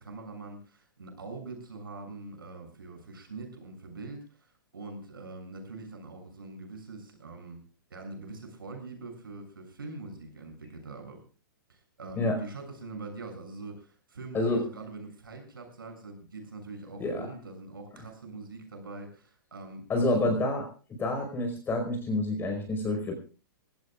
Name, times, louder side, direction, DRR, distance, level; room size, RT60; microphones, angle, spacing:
voice 1, 0.0-4.5 4.7-7.6 7.9-11.2 11.7-20.3, right 3 dB, 75° right, 4 dB, 7.2 m, -43 dB
voice 2, 19.9-20.6 21.0-23.2, left 2 dB, 20° left, 4 dB, 5.1 m, -28 dB
24.0 x 17.0 x 2.5 m, 0.38 s
figure-of-eight pair, 110°, 12 cm